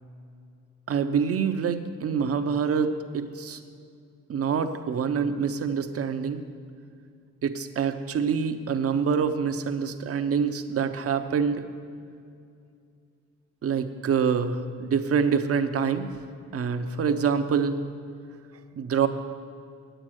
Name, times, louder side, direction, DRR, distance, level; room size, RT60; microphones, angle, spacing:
voice 1, 0.9-3.6 4.3-6.4 7.4-11.7 13.6-16.1 16.5-17.8 18.8-19.1, right 6 dB, 50° right, 8 dB, 0.8 m, -26 dB
9.0 x 8.7 x 6.4 m, 2.4 s
cardioid pair, 90°, 30 cm